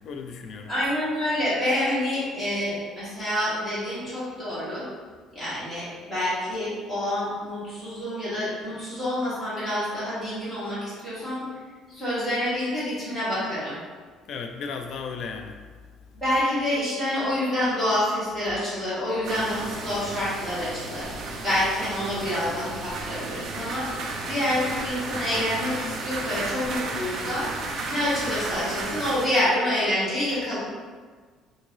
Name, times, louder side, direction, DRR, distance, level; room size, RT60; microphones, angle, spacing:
voice 1, 0.0-0.7 14.3-15.6, left 5 dB, 50° left, 4 dB, 0.3 m, -35 dB
voice 2, 0.7-4.9 5.3-11.4 11.9-13.8 16.1-21.1 21.4-23.9 24.3-27.5 27.9-30.6, left 1 dB, ahead, -12 dB, 1.3 m, -27 dB
sound 1, 19.2-29.3, right 3 dB, 45° right, 0.4 m, -33 dB
3.7 x 2.6 x 3.1 m, 1.5 s
cardioid pair, 160°, 0 cm